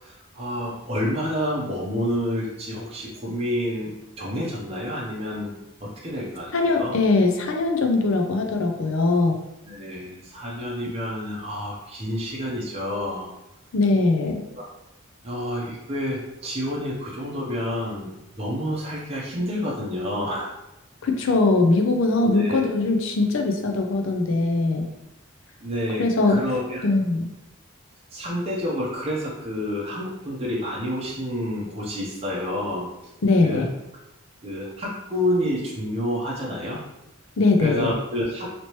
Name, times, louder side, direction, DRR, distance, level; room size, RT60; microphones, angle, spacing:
voice 1, 0.0-5.5 5.8-6.9 9.6-13.3 14.6-14.7 15.2-20.5 22.2-22.6 25.6-26.8 28.1-32.9 33.4-33.6 34.4-36.8 37.6-38.5, equal, 25° right, -5 dB, 0.6 m, -29 dB
voice 2, 6.5-9.4 13.7-14.4 21.0-24.8 26.0-26.4 26.8-27.3 33.2-33.7 37.4-37.9, left 3 dB, 65° left, 3 dB, 0.5 m, -21 dB
3.0 x 2.9 x 3.0 m, 0.90 s
head